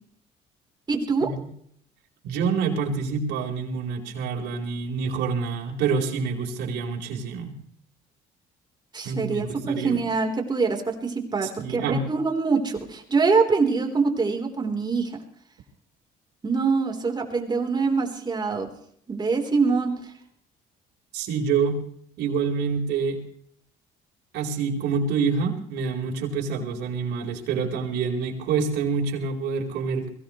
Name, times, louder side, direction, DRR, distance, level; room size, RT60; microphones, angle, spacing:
voice 1, 0.9-1.3 8.9-15.2 16.4-18.7 19.1-20.1, right 4 dB, 25° right, 3 dB, 3.7 m, -24 dB
voice 2, 2.2-7.5 9.0-10.0 11.4-12.0 21.1-21.8 22.2-23.2 24.3-30.1, right 5 dB, 80° right, 1 dB, 4.3 m, -27 dB
22.5 x 17.0 x 3.2 m, 0.65 s
cardioid pair, 110°, 17 cm